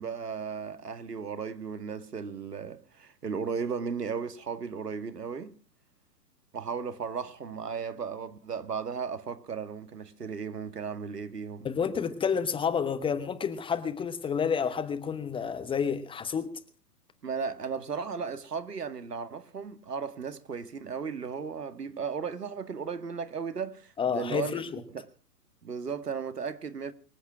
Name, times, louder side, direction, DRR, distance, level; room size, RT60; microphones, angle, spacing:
voice 1, 0.0-5.5 6.5-11.7 17.2-24.6 24.9-25.1 25.6-26.9, right 6 dB, 75° right, 2.2 m, -35 dB
voice 2, 11.6-16.6 24.0-24.8, left 6 dB, 10° left, 1.0 m, -30 dB
24.5 x 8.5 x 6.1 m
figure-of-eight pair, 115°, 48 cm